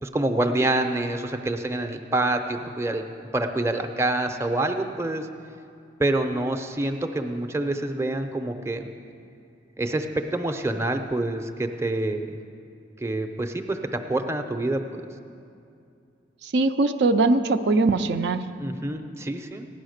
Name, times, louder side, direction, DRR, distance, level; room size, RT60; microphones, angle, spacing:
voice 1, 0.0-3.0 3.3-5.3 6.0-8.9 9.8-12.4 13.0-15.0 18.6-19.7, right 2 dB, 15° right, 5 dB, 0.6 m, -27 dB
voice 2, 16.4-18.4, right 3 dB, 65° right, 7 dB, 0.5 m, -21 dB
15.5 x 9.9 x 6.5 m, 2.5 s
head